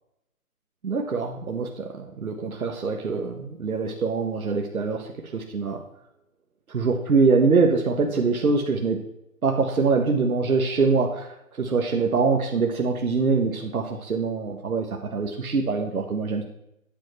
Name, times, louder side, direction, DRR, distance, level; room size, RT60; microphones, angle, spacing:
voice 1, 0.8-5.8 6.7-9.0 9.4-16.4, right 4 dB, 80° right, 3 dB, 1.4 m, -24 dB
9.5 x 8.7 x 3.3 m, 0.80 s
hypercardioid pair, 160°, 43 cm